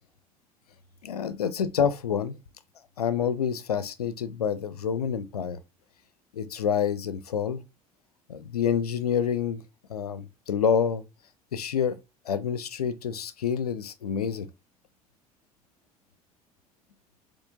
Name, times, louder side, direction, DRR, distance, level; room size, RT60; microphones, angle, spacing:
voice 1, 1.0-2.4 3.0-5.6 6.3-7.6 8.3-9.6 9.9-11.0 11.5-12.0 12.3-14.5, left 7 dB, 80° left, 0.4 m, -27 dB
4.3 x 3.0 x 2.4 m
figure-of-eight pair, 60°, 19 cm